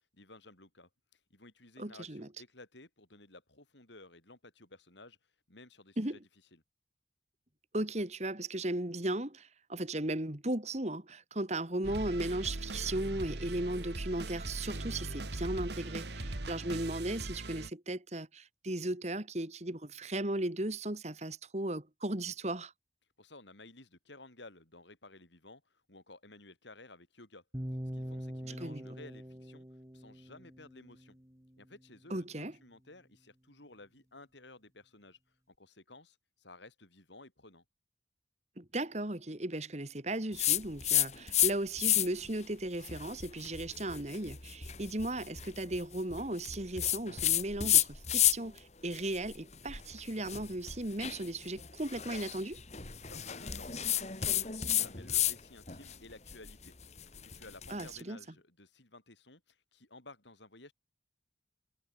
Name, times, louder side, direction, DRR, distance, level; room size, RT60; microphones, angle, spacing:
voice 1, 0.1-5.2 5.5-6.2 6.5-6.6 23.2-27.4 27.9-29.6 29.9-31.2 31.6-35.2 35.5-37.6 53.0-56.7 57.2-60.7, left 2 dB, 75° left, 6.5 m, -55 dB
voice 2, 1.8-2.3 6.0-6.2 7.7-22.7 28.6-28.9 32.1-32.5 38.6-52.6 57.7-58.2, right 1 dB, 35° right, 1.9 m, -36 dB
sound 1, 11.8-17.7, right 2 dB, 65° right, 1.8 m, -40 dB
sound 2, 27.5-31.6, equal, 15° right, 1.7 m, -43 dB
sound 3, 40.4-41.5 41.8-42.3 42.8-48.6 48.9-55.4 55.7-57.9, left 11 dB, 35° left, 2.2 m, -31 dB
head